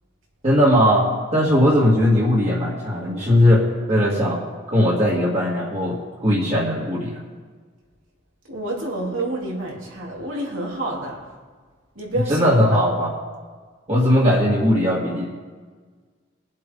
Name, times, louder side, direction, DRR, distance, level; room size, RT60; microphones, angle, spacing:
voice 1, 0.4-4.4 4.7-7.2 12.3-13.1 13.9-15.2, left 1 dB, 35° right, -6 dB, 2.0 m, -19 dB
voice 2, 8.5-11.2 11.9-13.0, right 2 dB, 85° right, -3 dB, 3.3 m, -28 dB
22.0 x 7.5 x 3.9 m, 1.5 s
head